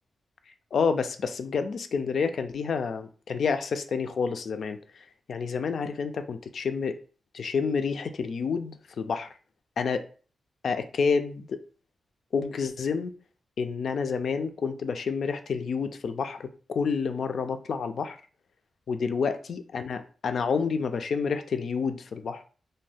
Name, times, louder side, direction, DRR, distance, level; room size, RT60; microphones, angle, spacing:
voice 1, 0.7-4.8 5.3-7.0 7.3-9.3 9.8-10.0 10.6-11.6 12.3-13.1 13.6-18.2 18.9-22.4, left 5 dB, 65° left, 9 dB, 0.3 m, -29 dB
2.6 x 2.2 x 3.3 m, 0.40 s
wide cardioid pair, 125°, 0 cm